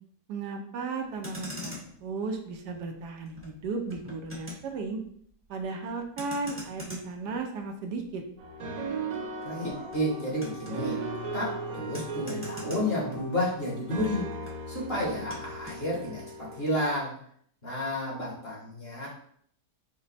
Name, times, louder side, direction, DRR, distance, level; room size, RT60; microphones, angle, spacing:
voice 1, 0.3-1.7 2.0-5.0 5.5-8.2, right 4 dB, 75° right, 3 dB, 1.2 m, -35 dB
Motor vehicle (road), 1.0-13.7 13.9-15.8, left 1 dB, 10° right, 0.9 m, -46 dB
sound 1, 8.4-17.0, right 3 dB, 60° right, 1.1 m, -38 dB
Dog, 9.4-14.6, right 1 dB, 70° left, 1.8 m, -44 dB
voice 2, 9.4-11.0 11.3-14.3 14.7-17.1 17.6-19.1, left 1 dB, 35° left, -5 dB, 1.4 m, -31 dB
5.0 x 2.2 x 4.0 m, 0.63 s
omnidirectional pair, 1.8 m